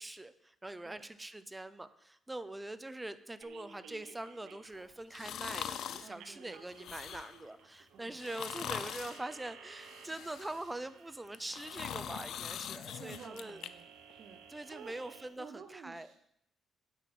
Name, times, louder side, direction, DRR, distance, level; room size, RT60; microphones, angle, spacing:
voice 1, 0.0-13.6 14.5-16.1, right 2 dB, 15° right, 13 dB, 0.7 m, -43 dB
sound 1, 3.4-15.3, right 7 dB, 85° right, 1.0 m, -56 dB
sound 2, 5.1-6.1 6.7-7.4 8.1-9.2 9.8-10.7 11.3-13.7 14.1-14.2, left 9 dB, 70° left, 0.5 m, -42 dB
voice 2, 6.0-6.6 7.9-8.2 12.9-14.9 15.4-16.2, right 6 dB, 60° right, 6 dB, 0.9 m, -53 dB
9.2 x 7.8 x 6.1 m, 0.75 s
cardioid pair, 90°, 0 cm